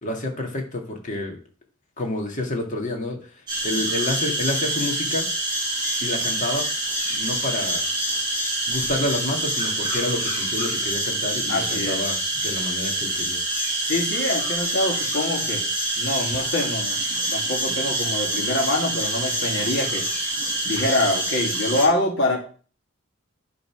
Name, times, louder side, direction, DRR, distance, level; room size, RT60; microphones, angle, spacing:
voice 1, 0.0-1.4 2.0-5.3 6.0-6.6 7.1-7.9 8.7-13.4, left 1 dB, 35° left, 1 dB, 2.0 m, -29 dB
sound 1, 3.5-21.9, right 1 dB, 20° right, 5.5 m, -26 dB
voice 2, 11.5-12.0 13.8-15.7 16.0-17.0 17.3-20.1 20.6-22.4, left 1 dB, 55° left, 0 dB, 2.4 m, -25 dB
10.5 x 4.0 x 6.1 m, 0.40 s
head